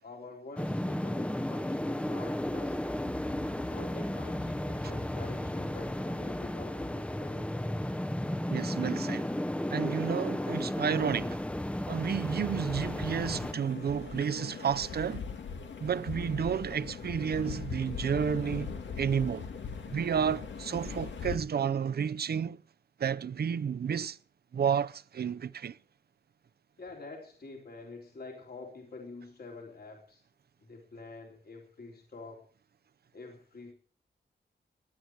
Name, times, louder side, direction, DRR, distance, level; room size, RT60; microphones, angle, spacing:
voice 1, 0.0-3.0 3.6-7.8 26.8-30.2 30.6-32.4 33.1-33.7, left 3 dB, 60° left, 3.7 m, -47 dB
sound 1, 0.6-13.5, left 1 dB, 5° left, 0.7 m, -34 dB
voice 2, 8.5-9.3 9.7-11.4 11.9-15.2 15.8-19.5 19.9-22.6 23.0-24.2 24.5-25.8, right 7 dB, 60° right, 0.6 m, -31 dB
sound 2, 12.6-21.4, left 6 dB, 85° left, 2.1 m, -40 dB
19.0 x 11.0 x 4.6 m
wide cardioid pair, 140°, 19 cm